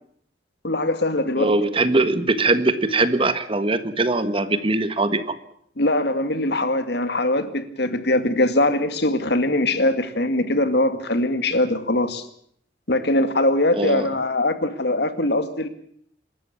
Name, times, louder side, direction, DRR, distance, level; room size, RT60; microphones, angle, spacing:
voice 1, 0.6-1.5 5.8-12.3 12.9-15.7, left 1 dB, 65° left, 2.1 m, -22 dB
voice 2, 1.4-5.2 13.8-14.1, right 2 dB, 30° right, 1.5 m, -21 dB
27.0 x 13.0 x 8.5 m
head